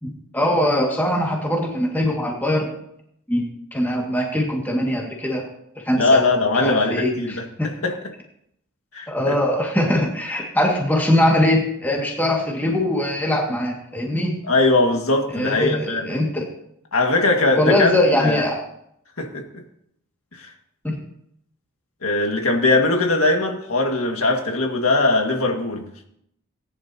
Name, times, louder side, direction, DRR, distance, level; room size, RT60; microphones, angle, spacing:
voice 1, 0.0-2.7 3.3-3.4 3.7-5.4 5.8-6.2 6.6-7.7 9.1-14.4 15.3-16.5 17.5-18.6 20.8-21.0, left 1 dB, 10° left, -1 dB, 2.0 m, -21 dB
voice 2, 6.0-7.4 7.8-8.0 8.9-9.4 14.5-16.1 16.9-18.5 19.2-19.4 20.4-20.5 22.0-26.1, left 2 dB, 90° left, 2 dB, 2.0 m, -20 dB
19.0 x 10.5 x 2.9 m, 0.74 s
head